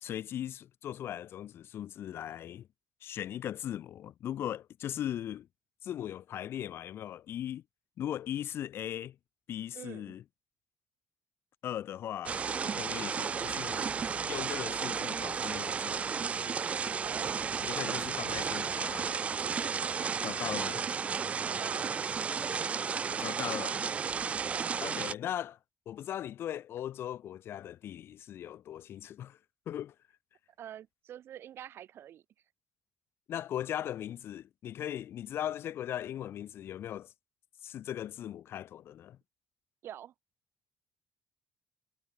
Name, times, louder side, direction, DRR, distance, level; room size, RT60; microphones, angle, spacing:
voice 1, 0.0-2.7 3.0-5.5 5.8-7.6 8.0-9.2 9.5-10.2 11.6-12.4 12.6-13.9 14.3-16.0 17.6-19.1 20.2-20.8 23.2-23.8 24.8-25.6 25.9-29.4 29.7-29.9 33.3-37.1 37.6-39.2, left 11 dB, 60° left, 2.6 m, -38 dB
voice 2, 9.7-10.2 17.0-17.5 19.8-20.1 21.5-22.0 24.5-24.8 30.6-32.2 39.8-40.1, right 11 dB, 60° right, 5.9 m, -46 dB
sound 1, 12.3-25.1, right 6 dB, 30° right, 0.3 m, -33 dB
cardioid pair, 150°, 5 cm